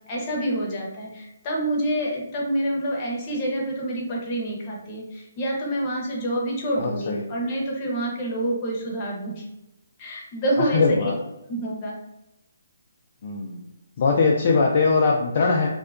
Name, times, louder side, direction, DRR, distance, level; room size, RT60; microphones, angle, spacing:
voice 1, 0.1-9.4 10.0-11.1 11.5-12.0, right 1 dB, 30° left, -3 dB, 0.7 m, -27 dB
voice 2, 6.8-7.2 10.6-11.2 13.2-13.6 14.0-15.7, left 4 dB, 45° left, -1 dB, 0.3 m, -21 dB
2.7 x 2.2 x 2.4 m, 0.92 s
hypercardioid pair, 150°, 0 cm